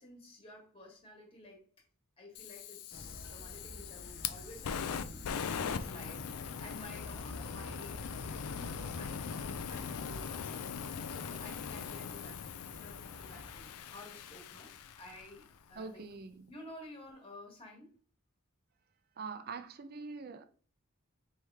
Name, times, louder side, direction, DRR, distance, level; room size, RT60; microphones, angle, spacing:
voice 1, 0.0-1.7 2.2-12.4 12.8-14.7 15.0-16.0 16.5-17.9, left 1 dB, 25° left, 1.3 m, -52 dB
Fire, 2.3-15.5, left 7 dB, 90° left, 0.4 m, -41 dB
sound 1, 2.9-10.2, left 1 dB, 55° left, 0.7 m, -48 dB
sound 2, 7.5-13.6, equal, 80° right, 0.9 m, -55 dB
voice 2, 15.8-16.5 19.2-20.4, right 4 dB, 45° right, 0.4 m, -44 dB
4.3 x 3.2 x 3.4 m
head